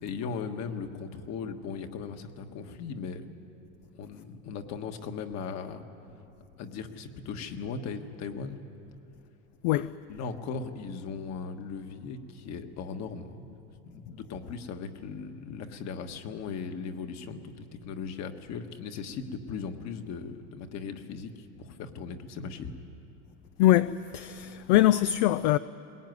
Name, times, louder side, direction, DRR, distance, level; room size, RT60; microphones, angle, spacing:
voice 1, 0.0-3.2 3.9-5.8 6.6-8.6 10.1-13.5 13.8-22.7, left 5 dB, 45° left, 1.6 m, -38 dB
voice 2, 9.6-10.0 23.6-25.6, left 14 dB, 60° left, 0.6 m, -23 dB
21.0 x 19.5 x 9.5 m
supercardioid pair, 135°, 38 cm